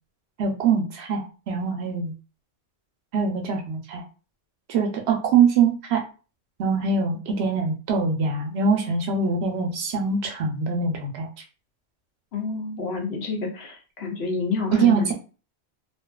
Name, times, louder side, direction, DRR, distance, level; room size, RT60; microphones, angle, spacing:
voice 1, 0.4-2.1 3.1-4.0 4.7-6.0 6.6-11.3 14.7-15.1, right 5 dB, 70° right, 2 dB, 0.9 m, -23 dB
voice 2, 12.3-15.1, left 4 dB, 70° left, 2 dB, 0.9 m, -29 dB
2.6 x 2.4 x 2.2 m, 0.34 s
omnidirectional pair, 1.1 m